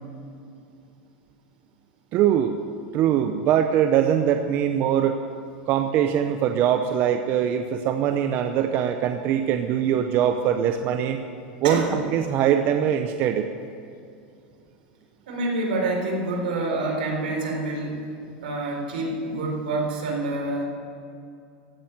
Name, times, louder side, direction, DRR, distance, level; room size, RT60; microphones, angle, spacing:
voice 1, 2.1-2.6 2.9-5.2 5.7-11.2 11.6-13.5, right 9 dB, 40° right, 7 dB, 0.7 m, -22 dB
voice 2, 11.6-12.0 15.3-18.0 18.4-20.7, right 2 dB, 85° right, 0 dB, 4.0 m, -27 dB
15.0 x 7.0 x 9.4 m, 2.5 s
supercardioid pair, 140°, 5 cm